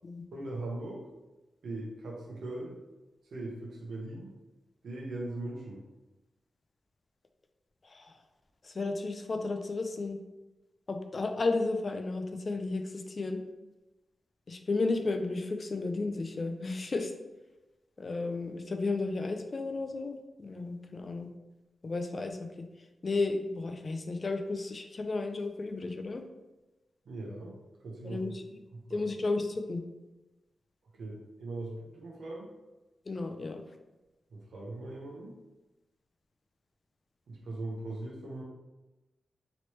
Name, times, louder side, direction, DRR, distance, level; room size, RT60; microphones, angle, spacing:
voice 1, 0.3-1.0 1.6-2.8 3.3-4.3 4.8-5.8 27.1-27.5 27.8-28.3 28.7-29.1 31.0-32.5 34.3-35.3 37.3-38.4, right 2 dB, 75° right, -2 dB, 0.8 m, -40 dB
voice 2, 8.6-10.2 10.9-13.4 14.5-17.1 18.0-21.3 21.8-22.5 23.0-26.2 28.0-28.4 28.9-29.8 33.1-33.6, left 3 dB, 35° left, 6 dB, 0.3 m, -33 dB
3.0 x 2.9 x 3.1 m, 1.1 s
wide cardioid pair, 165°, 0 cm